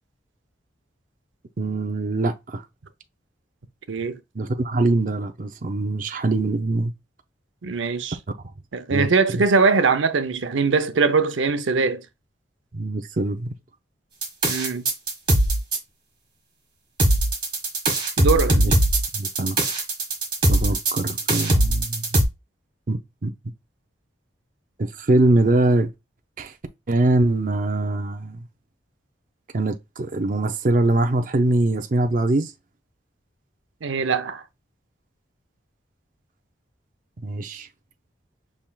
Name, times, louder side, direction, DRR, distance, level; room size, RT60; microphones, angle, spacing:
voice 1, 1.6-2.6 4.4-6.9 8.9-9.1 12.7-13.5 18.5-18.7 19.1-19.6 20.5-22.1 22.9-23.3 24.8-25.9 26.4-26.5 26.9-28.4 29.5-32.5 37.2-37.7, right 2 dB, 45° right, 0.5 m, -23 dB
voice 2, 3.9-4.2 7.6-8.2 8.7-12.0 14.5-14.9 18.2-18.6 33.8-34.4, right 4 dB, 90° right, 0.6 m, -21 dB
sound 1, 14.2-15.8 17.0-22.2, right 1 dB, 25° right, 1.5 m, -20 dB
5.9 x 3.5 x 2.3 m
head